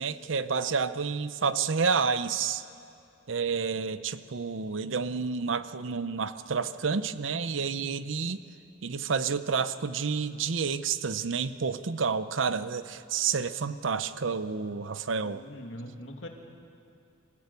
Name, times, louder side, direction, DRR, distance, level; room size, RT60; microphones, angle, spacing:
voice 1, 0.0-2.6 3.3-8.4 8.8-15.4, right 5 dB, 75° right, 13 dB, 0.7 m, -29 dB
voice 2, 15.2-16.3, equal, 75° left, 3 dB, 2.2 m, -42 dB
26.0 x 15.5 x 8.3 m, 2.6 s
head